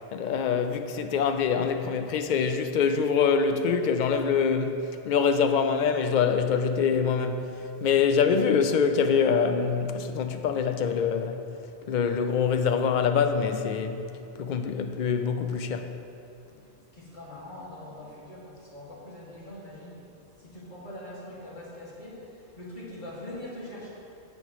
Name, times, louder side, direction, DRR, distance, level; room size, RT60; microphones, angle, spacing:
voice 1, 0.1-7.5 7.8-11.4 11.9-14.1 14.4-15.9, left 6 dB, 60° left, 0.5 m, -25 dB
voice 2, 16.9-23.9, left 1 dB, 45° left, 2.3 m, -43 dB
15.5 x 5.2 x 3.1 m
omnidirectional pair, 1.2 m